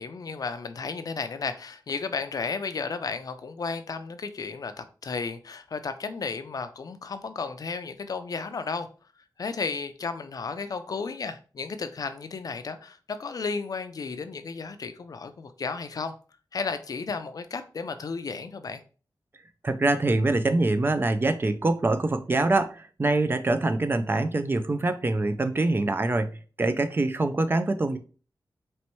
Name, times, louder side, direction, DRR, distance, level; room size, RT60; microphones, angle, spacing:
voice 1, 0.0-8.9 9.4-16.1 16.5-18.8, left 4 dB, 55° left, 0.4 m, -33 dB
voice 2, 19.6-28.0, right 2 dB, 30° right, 0.3 m, -24 dB
4.4 x 3.1 x 3.0 m
wide cardioid pair, 135°, 8 cm